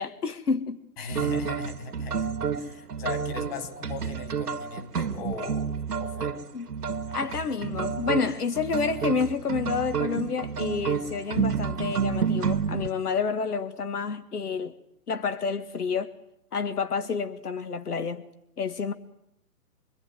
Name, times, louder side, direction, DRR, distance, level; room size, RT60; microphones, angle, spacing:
voice 1, 0.0-0.8 6.5-6.7 7.1-14.8 15.1-16.1 16.5-18.2 18.6-18.9, left 5 dB, 70° left, 2.1 m, -29 dB
voice 2, 1.0-2.3 2.6-6.4, left 4 dB, 40° left, 4.2 m, -39 dB
sound 1, 1.1-12.9, right 6 dB, 80° right, 1.9 m, -30 dB
26.0 x 24.0 x 9.4 m
hypercardioid pair, 145°, 47 cm